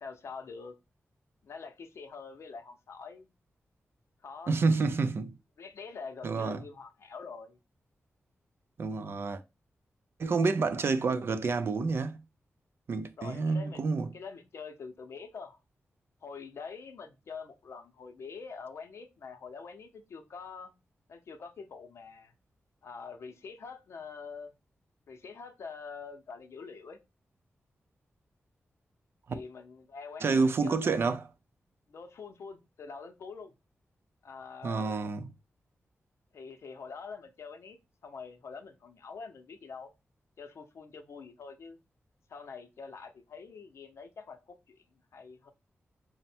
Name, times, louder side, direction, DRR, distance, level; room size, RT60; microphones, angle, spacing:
voice 1, 0.0-0.7 1.4-3.3 4.2-4.6 5.6-7.6 13.2-13.8 14.1-15.6 16.2-20.7 21.1-22.3 22.8-24.5 25.1-27.0 29.3-30.9 31.9-33.5 34.2-35.0 36.3-37.8 38.0-39.9 40.4-41.8 42.3-44.8 45.1-45.5, left 5 dB, 70° left, 0.6 m, -45 dB
voice 2, 4.5-5.3 6.2-6.6 8.8-9.4 10.2-12.2 12.9-14.1 30.2-31.2 34.6-35.3, right 4 dB, 55° right, 0.4 m, -28 dB
4.2 x 2.1 x 4.2 m
wide cardioid pair, 135°, 5 cm